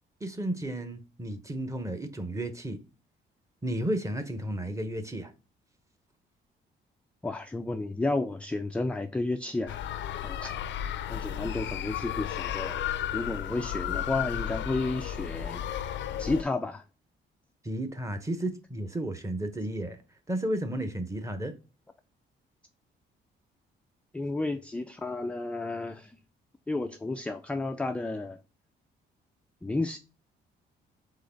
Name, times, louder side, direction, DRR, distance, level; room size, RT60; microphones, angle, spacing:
voice 1, 0.2-2.8 3.6-5.3 17.6-20.0 20.3-21.5, right 1 dB, 15° right, 0.9 m, -33 dB
voice 2, 7.2-9.8 10.2-10.5 11.1-12.8 13.1-15.6 16.2-16.8 24.1-26.2 26.7-28.4 29.6-30.0, left 2 dB, 5° left, 0.3 m, -32 dB
sound 1, 9.7-16.4, left 10 dB, 65° left, 0.5 m, -33 dB
3.9 x 3.2 x 4.3 m
cardioid pair, 90°, 20 cm